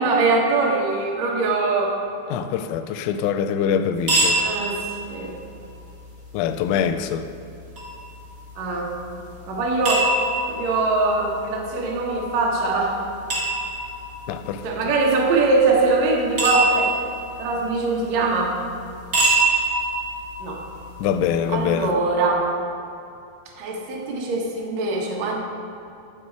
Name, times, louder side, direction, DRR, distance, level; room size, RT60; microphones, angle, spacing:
voice 1, 0.0-1.9 4.3-4.8 5.1-5.3 8.6-8.9 9.5-10.1 10.5-13.0 14.6-16.9 17.4-18.5 20.4-20.6 21.5-22.4 23.6-25.4, right 3 dB, 75° right, 1.6 m, -22 dB
voice 2, 2.3-4.4 6.3-7.3 14.3-14.9 21.0-22.0, left 8 dB, 90° left, 2.8 m, -24 dB
sound 1, 4.0-21.9, right 2 dB, 40° right, 1.2 m, -27 dB
13.0 x 4.5 x 4.6 m
omnidirectional pair, 5.0 m